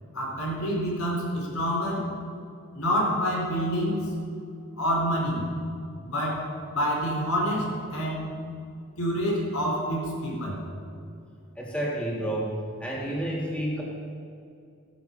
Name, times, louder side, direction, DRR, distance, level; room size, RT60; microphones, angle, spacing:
voice 1, 0.1-2.1 2.7-4.1 4.8-5.4 6.0-8.3 9.0-10.6, equal, 85° left, -2 dB, 4.1 m, -27 dB
voice 2, 11.6-13.8, right 1 dB, 5° left, -5 dB, 2.5 m, -30 dB
15.0 x 10.5 x 5.8 m, 2.5 s
head